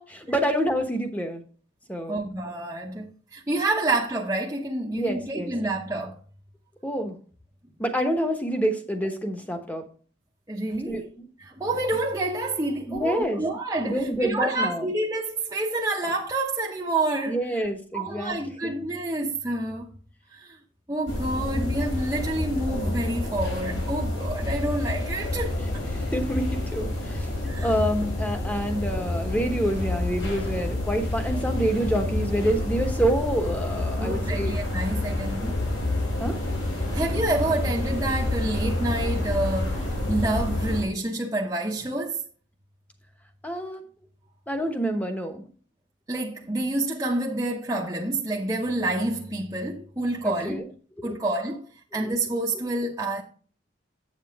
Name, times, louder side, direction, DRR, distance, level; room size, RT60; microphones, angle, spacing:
voice 1, 0.1-1.4 1.9-2.2 4.9-5.5 6.8-7.1 7.8-9.8 10.9-11.0 12.9-13.4 13.8-14.9 17.3-18.4 26.1-27.3 27.6-34.5 36.2-36.4 43.4-43.8 44.5-45.4 50.2-50.7, right 1 dB, 10° left, 1.0 m, -27 dB
voice 2, 2.1-6.2 10.5-11.1 11.4-17.7 17.9-19.9 20.3-20.6 20.9-25.8 27.5-27.8 34.0-35.5 36.9-42.2 46.1-50.6 51.0-51.6 51.9-53.2, right 2 dB, 15° right, 0.8 m, -28 dB
sound 1, 21.1-40.8, left 1 dB, 75° left, 3.6 m, -28 dB
8.1 x 7.5 x 3.5 m
head